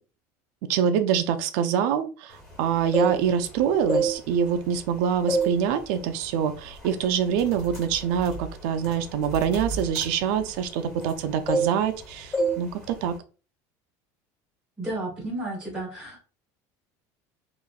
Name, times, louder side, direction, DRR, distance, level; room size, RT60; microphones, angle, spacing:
voice 1, 0.7-13.1, right 8 dB, 65° right, 8 dB, 0.4 m, -25 dB
sound 1, 2.7-3.5 3.8-4.9 5.3-5.6 6.0-6.2 6.8-7.0 7.3-11.2 11.5-12.0 12.3-12.6 12.9-13.2, right 2 dB, 15° left, 1.5 m, -28 dB
voice 2, 14.8-16.2, right 1 dB, 5° right, -7 dB, 1.0 m, -32 dB
2.9 x 2.4 x 2.2 m, 0.34 s
cardioid pair, 175°, 8 cm